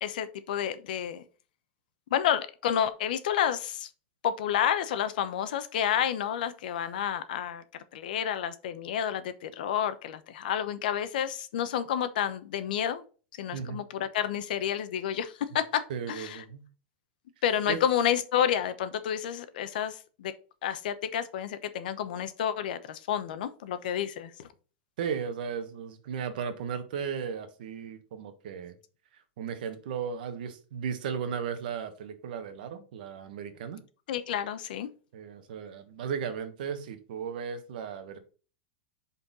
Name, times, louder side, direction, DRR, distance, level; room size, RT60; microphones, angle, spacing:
voice 1, 0.0-1.2 2.1-3.9 4.2-7.6 7.9-13.0 13.4-16.4 17.4-20.3 20.6-24.3 34.1-34.9, left 9 dB, 65° left, 12 dB, 0.9 m, -30 dB
voice 2, 13.5-13.8 15.9-16.7 17.7-17.8 25.0-28.8 29.4-33.8 35.1-38.2, right 7 dB, 65° right, 9 dB, 1.3 m, -35 dB
5.4 x 4.3 x 5.4 m, 0.37 s
supercardioid pair, 175°, 5 cm